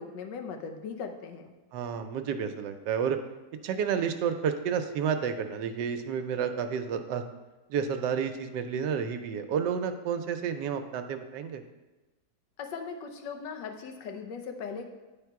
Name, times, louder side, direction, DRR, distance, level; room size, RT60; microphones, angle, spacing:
voice 1, 0.0-1.5 12.6-14.9, left 5 dB, 85° left, 5 dB, 1.4 m, -39 dB
voice 2, 1.7-3.2 3.6-7.2 7.7-11.6, right 7 dB, 80° right, 7 dB, 1.2 m, -30 dB
10.0 x 3.5 x 4.6 m, 1.1 s
omnidirectional pair, 1.9 m